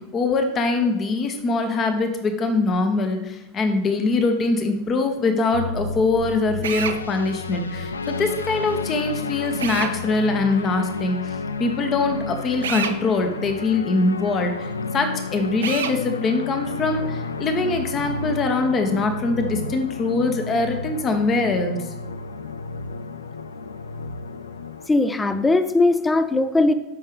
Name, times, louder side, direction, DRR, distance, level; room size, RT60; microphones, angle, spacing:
voice 1, 0.1-21.9, left 3 dB, 30° left, 6 dB, 1.3 m, -23 dB
sound 1, 5.5-24.9, left 4 dB, 85° left, 0.4 m, -31 dB
Drill, 6.6-7.0 9.6-10.0 12.6-13.0 15.6-16.0, right 7 dB, 70° right, 0.6 m, -27 dB
voice 2, 24.9-26.7, left 2 dB, 15° left, 12 dB, 0.7 m, -19 dB
14.0 x 5.8 x 3.2 m, 1.0 s
figure-of-eight pair, 85°, 0 cm